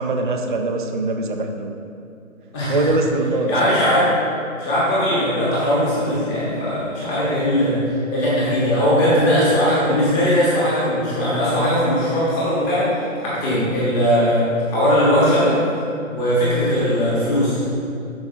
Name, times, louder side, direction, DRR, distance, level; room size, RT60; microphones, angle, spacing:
voice 1, 0.0-1.7 2.7-3.9, right 2 dB, 40° right, 3 dB, 0.4 m, -23 dB
voice 2, 2.5-2.8 3.5-4.1 4.6-7.8 8.1-15.6 16.1-17.9, equal, 10° left, -8 dB, 1.1 m, -19 dB
12.5 x 4.7 x 2.7 m, 2.5 s
hypercardioid pair, 160°, 41 cm